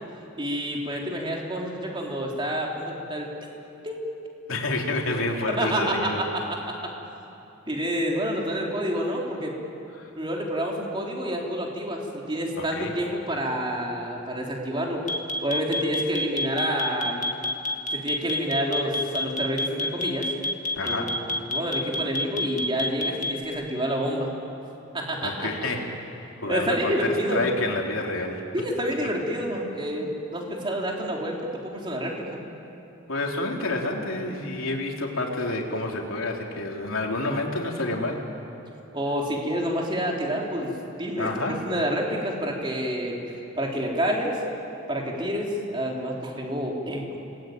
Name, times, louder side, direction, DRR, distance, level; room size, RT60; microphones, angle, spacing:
voice 1, 0.4-3.3 3.8-4.0 5.6-6.7 7.7-9.5 10.2-15.0 15.4-17.3 17.9-20.3 20.8-24.4 24.9-25.5 26.5-27.5 28.5-32.4 38.9-40.7 41.0-43.2 43.6-44.4 44.9-47.2, equal, 25° right, -1 dB, 3.5 m, -28 dB
voice 2, 4.5-6.2 10.0-10.1 12.6-12.9 20.8-21.1 25.2-26.0 26.4-28.4 33.1-38.2 41.2-41.6, left 2 dB, 85° left, 0 dB, 3.4 m, -28 dB
sound 1, 15.1-23.4, left 1 dB, 35° left, 1.9 m, -27 dB
29.5 x 20.0 x 9.4 m, 2.9 s
head